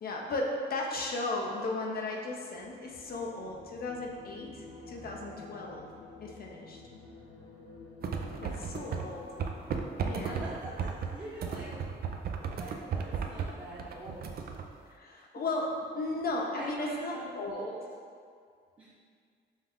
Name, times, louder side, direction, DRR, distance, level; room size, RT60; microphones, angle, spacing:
voice 1, 0.0-5.9 6.2-6.8 8.4-9.3 10.0-10.4 14.9-17.7, left 2 dB, 50° left, 0 dB, 0.6 m, -35 dB
sound 1, 2.5-11.9 12.2-12.5, left 3 dB, 75° left, 1.0 m, -51 dB
sound 2, 8.0-9.1 9.4-14.7, right 6 dB, 50° right, 0.4 m, -35 dB
voice 2, 8.1-9.1 10.2-11.9 12.3-14.5 15.3-15.5 16.5-17.8 18.8-18.9, right 1 dB, 25° right, -11 dB, 0.9 m, -45 dB
5.3 x 2.4 x 3.6 m, 2.2 s
cardioid pair, 90°, 20 cm